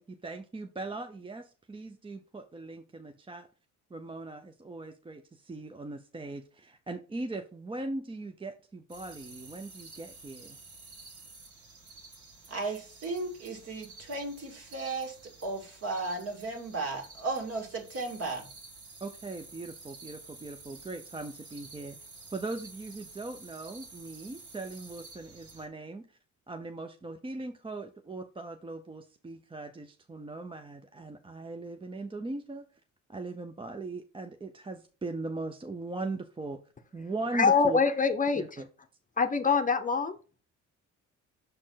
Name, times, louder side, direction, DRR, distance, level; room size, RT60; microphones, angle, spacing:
voice 1, 0.0-3.5 3.9-10.6 19.0-22.0 22.3-26.2 26.5-32.7 33.1-36.6 36.9-37.8 38.3-38.7, right 2 dB, 15° right, 0.6 m, -39 dB
sound 1, 8.9-25.7, right 3 dB, 75° right, 2.5 m, -51 dB
voice 2, 12.5-18.5, right 3 dB, 50° right, 2.3 m, -35 dB
voice 3, 37.3-38.4 39.2-40.2, left 5 dB, 25° left, 0.7 m, -24 dB
6.5 x 4.3 x 3.9 m
cardioid pair, 90°, 30 cm